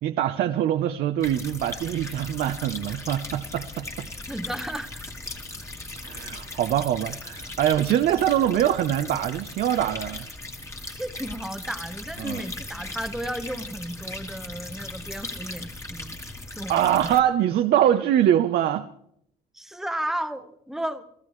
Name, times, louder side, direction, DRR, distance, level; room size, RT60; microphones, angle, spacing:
voice 1, 0.0-4.1 6.0-10.3 12.2-12.4 16.7-18.9, right 11 dB, 65° right, 0.9 m, -23 dB
sound 1, 1.2-17.2, left 2 dB, 15° left, 2.1 m, -38 dB
voice 2, 4.3-5.0 10.9-16.2 16.6-16.8 19.5-21.0, right 1 dB, ahead, 1.2 m, -33 dB
29.0 x 15.0 x 3.2 m
cardioid pair, 110°, 17 cm